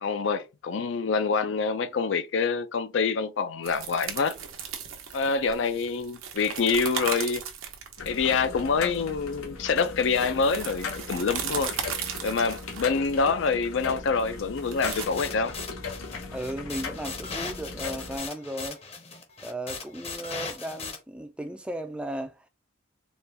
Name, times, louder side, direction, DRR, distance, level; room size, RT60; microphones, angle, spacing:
voice 1, 0.0-4.4 5.1-7.4 8.1-11.7 12.2-15.5, left 5 dB, 65° left, 0.4 m, -26 dB
sound 1, 3.6-15.0, right 7 dB, 90° right, 0.8 m, -37 dB
sound 2, 8.0-18.2, left 4 dB, 90° left, 1.0 m, -38 dB
sound 3, 14.8-21.0, left 4 dB, 30° left, 0.8 m, -38 dB
voice 2, 16.3-18.8 19.4-22.5, right 1 dB, 5° right, 0.3 m, -35 dB
4.2 x 2.3 x 3.3 m
head